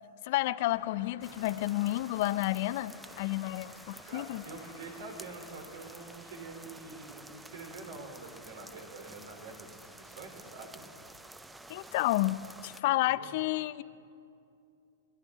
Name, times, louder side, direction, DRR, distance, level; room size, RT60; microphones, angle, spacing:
voice 1, 0.3-4.4 11.7-13.8, left 17 dB, 55° left, 17 dB, 0.4 m, -30 dB
Car passing by, 0.7-12.2, left 8 dB, 70° left, 1.2 m, -58 dB
sound 1, 1.2-12.8, right 2 dB, 5° right, 0.5 m, -51 dB
voice 2, 4.1-10.8 13.1-13.3, right 3 dB, 70° right, 3 dB, 3.2 m, -46 dB
30.0 x 11.5 x 3.6 m, 2.6 s
hypercardioid pair, 130°, 0 cm